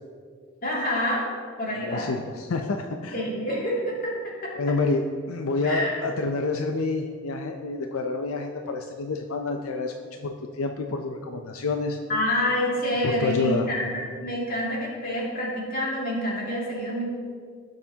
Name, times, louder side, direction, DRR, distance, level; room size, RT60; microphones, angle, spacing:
voice 1, 0.6-1.3 1.6-2.1 3.1-4.6 5.6-6.0 12.1-17.0, left 1 dB, 45° left, -4 dB, 2.5 m, -27 dB
voice 2, 1.8-3.2 4.6-9.9 10.2-12.0 13.0-13.7, left 3 dB, 85° left, 4 dB, 0.6 m, -28 dB
17.5 x 6.6 x 2.8 m, 2.1 s
head